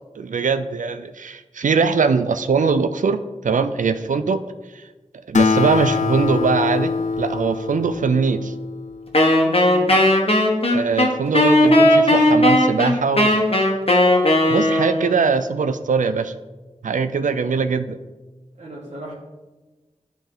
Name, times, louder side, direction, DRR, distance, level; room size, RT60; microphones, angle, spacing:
voice 1, 0.2-4.4 5.3-8.5 10.7-13.4 14.5-16.3 16.8-18.0, right 5 dB, 90° right, 10 dB, 0.4 m, -21 dB
Acoustic guitar, 5.3-9.1, left 5 dB, 70° left, 0.4 m, -23 dB
Wind instrument woodwind instrument, 9.1-15.2, left 1 dB, 50° left, 1.2 m, -16 dB
voice 2, 18.6-19.1, right 2 dB, 65° right, -6 dB, 1.4 m, -36 dB
10.0 x 3.5 x 3.8 m, 1.2 s
wide cardioid pair, 40°, 13 cm